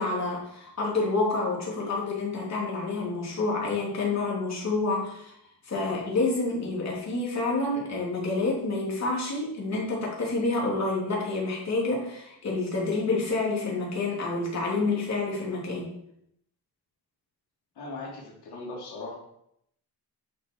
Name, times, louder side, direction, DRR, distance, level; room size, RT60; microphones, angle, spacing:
voice 1, 0.0-5.3 5.6-15.9, left 3 dB, 45° left, -3 dB, 3.2 m, -28 dB
voice 2, 17.8-19.1, left 2 dB, 80° left, -4 dB, 3.0 m, -38 dB
9.1 x 6.2 x 4.7 m, 0.74 s
wide cardioid pair, 165°, 39 cm